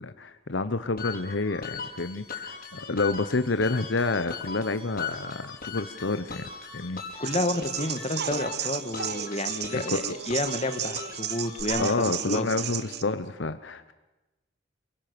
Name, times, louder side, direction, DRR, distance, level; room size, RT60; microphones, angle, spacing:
voice 1, 0.0-7.0 9.7-10.2 11.8-13.9, left 3 dB, 70° left, 11 dB, 1.0 m, -29 dB
sound 1, 1.0-11.6, left 6 dB, 50° left, 5.1 m, -39 dB
voice 2, 7.2-11.9 12.3-12.5, left 2 dB, 35° left, 9 dB, 1.8 m, -30 dB
sound 2, 7.2-13.0, right 9 dB, 55° right, 1.2 m, -34 dB
28.5 x 24.5 x 6.9 m, 1.1 s
head